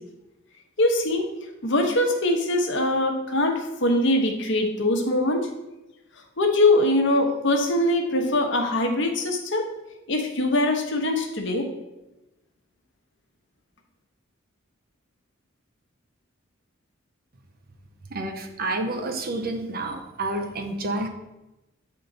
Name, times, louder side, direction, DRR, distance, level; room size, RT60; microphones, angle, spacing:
voice 1, 0.8-1.3 1.6-5.5 6.4-9.7 10.1-11.7, left 1 dB, 60° left, 3 dB, 1.0 m, -22 dB
voice 2, 18.1-21.1, right 2 dB, 50° right, 6 dB, 0.7 m, -29 dB
8.3 x 3.7 x 3.9 m, 0.98 s
head